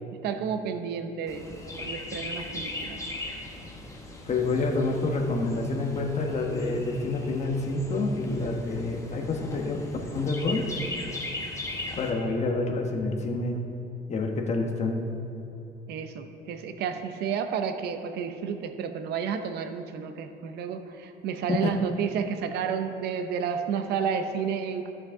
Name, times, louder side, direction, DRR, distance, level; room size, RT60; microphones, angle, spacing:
voice 1, 0.2-3.0 15.9-24.9, right 7 dB, 75° right, 8 dB, 0.7 m, -31 dB
Chirp tweet, 1.3-12.1, left 2 dB, 20° left, 1.4 m, -38 dB
voice 2, 4.3-9.8 10.1-10.7 12.0-13.6 14.1-15.0 21.5-21.7, left 3 dB, 40° left, 2 dB, 1.2 m, -28 dB
14.0 x 6.3 x 3.8 m, 2.9 s
cardioid pair, 110°, 17 cm